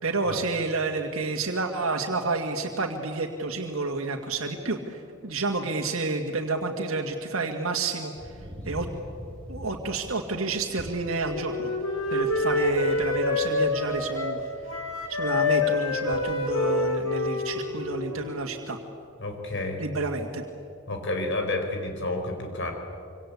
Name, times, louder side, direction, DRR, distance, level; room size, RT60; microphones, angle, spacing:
voice 1, 0.0-8.3 8.7-8.9 9.5-11.7 12.1-14.4 15.1-18.8 19.8-20.4, right 3 dB, 80° right, 2 dB, 2.1 m, -29 dB
sound 1, 8.1-18.4, equal, 5° left, 6.0 m, -46 dB
Wind instrument woodwind instrument, 10.9-14.4 14.7-18.5, left 3 dB, 80° left, 4.2 m, -27 dB
voice 2, 19.2-19.8 20.9-22.7, left 2 dB, 60° left, 4 dB, 4.4 m, -30 dB
26.0 x 25.5 x 8.5 m, 2.5 s
head